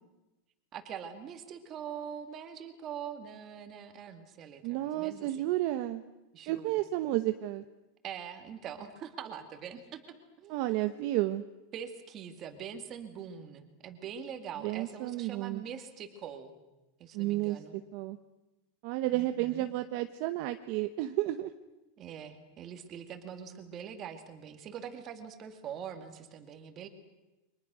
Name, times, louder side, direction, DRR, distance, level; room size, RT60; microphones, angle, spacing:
voice 1, 0.7-5.5 6.3-6.9 8.0-10.0 10.4-11.1 11.7-16.5 17.0-17.8 19.1-19.7 22.0-26.9, right 8 dB, 25° right, 8 dB, 2.4 m, -43 dB
voice 2, 4.6-6.0 6.5-7.6 10.5-11.4 14.6-15.6 17.1-17.6 17.9-18.2 18.8-21.5, right 16 dB, 45° right, 9 dB, 1.0 m, -31 dB
29.5 x 25.0 x 6.3 m, 1.0 s
supercardioid pair, 175°, 0 cm